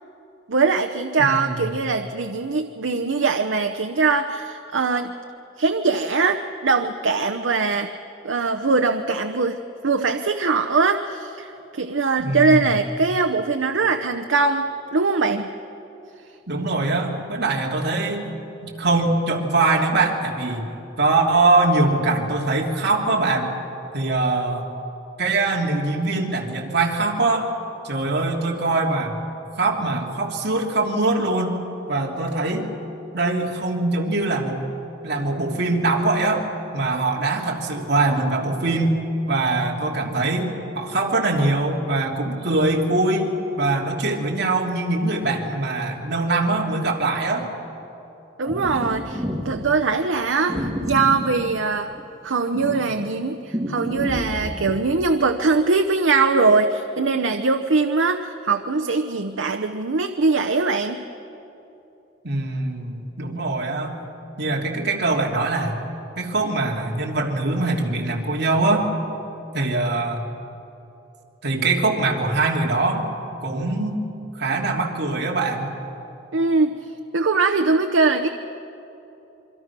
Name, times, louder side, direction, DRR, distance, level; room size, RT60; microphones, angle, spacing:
voice 1, 0.5-5.1 5.6-7.9 8.2-15.5 48.4-51.9 52.2-61.0 76.3-76.7 77.1-78.3, right 4 dB, 85° right, 6 dB, 0.8 m, -21 dB
voice 2, 1.2-1.6 12.2-12.7 16.5-18.3 18.6-20.7 21.0-23.5 23.9-24.7 25.2-27.5 27.8-29.2 29.6-31.6 31.9-32.7 33.1-34.6 35.0-36.4 36.7-43.3 43.6-47.5 62.2-64.0 64.4-65.8 66.2-68.9 69.5-70.2 71.4-73.1 73.4-74.0 74.4-75.7, right 2 dB, 60° right, -1 dB, 3.1 m, -22 dB
sound 1, 48.4-49.6 50.5-52.0 52.5-54.7, equal, 20° right, 2.1 m, -29 dB
26.5 x 24.0 x 6.1 m, 2.9 s
head